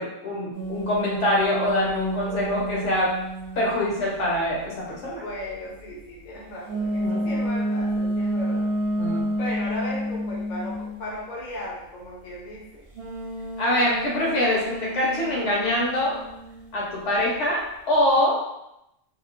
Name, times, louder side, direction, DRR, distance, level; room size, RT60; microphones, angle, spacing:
voice 1, 0.0-3.1 3.6-5.2 7.0-7.3 9.0-9.3 13.6-16.2 16.7-18.4, left 1 dB, 65° left, -5 dB, 1.0 m, -24 dB
sound 1, 0.5-4.3 6.7-11.0 12.9-16.7, right 1 dB, 60° right, 0.6 m, -30 dB
voice 2, 2.3-2.6 5.2-8.7 9.4-12.8, left 1 dB, 45° left, -5 dB, 0.7 m, -36 dB
2.9 x 2.0 x 2.4 m, 0.84 s
omnidirectional pair, 1.4 m